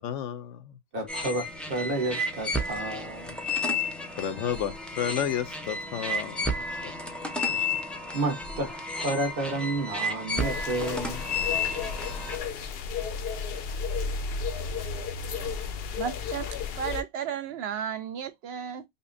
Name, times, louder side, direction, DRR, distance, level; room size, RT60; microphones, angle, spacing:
voice 1, 0.0-0.8 4.2-6.9, left 9 dB, 90° left, 1.0 m, -32 dB
voice 2, 0.9-3.4 7.5-7.7 8.1-8.7 9.0-11.3, right 2 dB, 50° right, 1.3 m, -31 dB
sound 1, 1.1-12.4, left 2 dB, ahead, 0.5 m, -32 dB
sound 2, 10.4-17.0, left 5 dB, 65° left, 0.7 m, -33 dB
voice 3, 16.0-16.5 16.8-18.8, right 8 dB, 65° right, 0.7 m, -33 dB
5.5 x 2.2 x 2.5 m
omnidirectional pair, 1.2 m